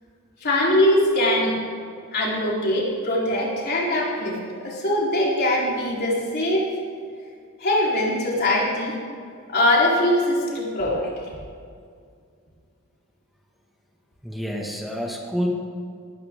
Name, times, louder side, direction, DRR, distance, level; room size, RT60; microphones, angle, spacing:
voice 1, 0.4-1.6 2.1-6.7 7.6-8.9 9.5-11.1, left 1 dB, 50° left, -4 dB, 4.0 m, -22 dB
voice 2, 14.2-15.5, equal, ahead, -1 dB, 1.9 m, -28 dB
18.5 x 13.5 x 3.8 m, 2.2 s
head